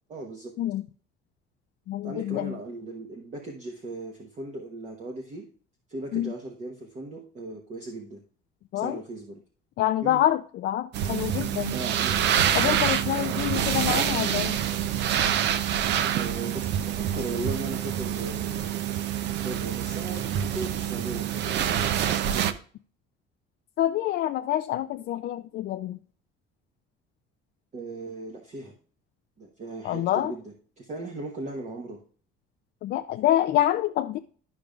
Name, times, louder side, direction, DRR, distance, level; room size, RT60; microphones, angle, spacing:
voice 1, 0.1-0.5 2.0-5.5 5.9-8.2 8.7-9.4 10.0-10.2 11.7-12.4 16.1-18.7 19.4-21.9 27.7-28.7 29.4-32.0, right 2 dB, 35° right, 1.1 m, -37 dB
voice 2, 1.9-2.5 6.1-6.3 8.7-9.0 9.8-11.7 12.5-14.6 23.8-26.0 29.8-30.3 32.8-34.2, left 13 dB, 55° left, 0.4 m, -26 dB
sound 1, 10.9-22.5, right 10 dB, 60° right, 0.6 m, -26 dB
12.0 x 5.1 x 2.4 m
cardioid pair, 125°, 21 cm